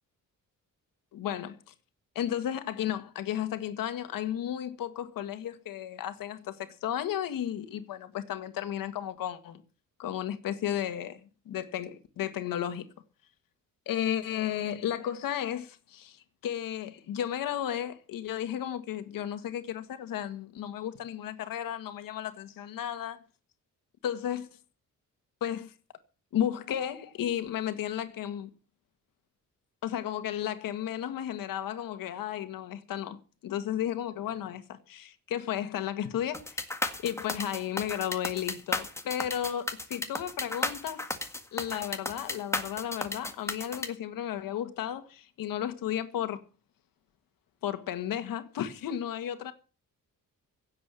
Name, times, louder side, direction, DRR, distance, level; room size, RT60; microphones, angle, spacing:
voice 1, 1.1-1.6 2.2-9.6 10.0-12.9 13.9-23.2 24.0-24.5 25.4-25.7 26.3-28.5 29.8-33.2 33.4-36.7 37.0-41.1 41.5-46.4 47.6-49.5, left 10 dB, 90° left, 1.9 m, -33 dB
sound 1, 36.3-43.9, left 2 dB, 10° left, 1.8 m, -33 dB
17.0 x 7.8 x 7.6 m
cardioid pair, 155°, 33 cm